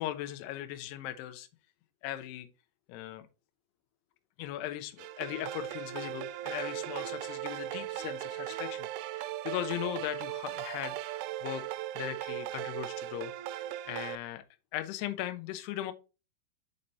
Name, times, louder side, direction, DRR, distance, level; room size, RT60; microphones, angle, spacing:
voice 1, 0.0-1.5 2.0-2.5 2.9-3.3 4.4-11.6 12.0-14.4 14.7-15.9, left 13 dB, 85° left, 8 dB, 2.3 m, -38 dB
sound 1, 5.0-14.2, right 13 dB, 85° right, 2.9 m, -38 dB
6.6 x 4.3 x 3.9 m, 0.30 s
omnidirectional pair, 5.5 m